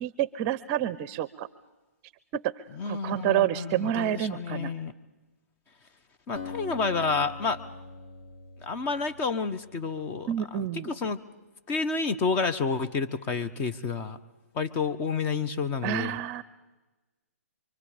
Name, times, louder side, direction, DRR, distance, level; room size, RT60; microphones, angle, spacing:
voice 1, 0.0-1.5 2.3-4.7 10.3-10.9 15.8-16.4, right 11 dB, 30° right, 18 dB, 0.7 m, -29 dB
voice 2, 2.8-4.9 6.3-7.6 8.6-10.3 10.9-11.2 11.7-14.2 14.5-16.1, left 4 dB, 25° left, 10 dB, 1.2 m, -29 dB
Acoustic guitar, 6.3-9.9, left 4 dB, 45° left, 4.2 m, -42 dB
25.5 x 24.5 x 5.2 m, 1.1 s
hypercardioid pair, 135°, 8 cm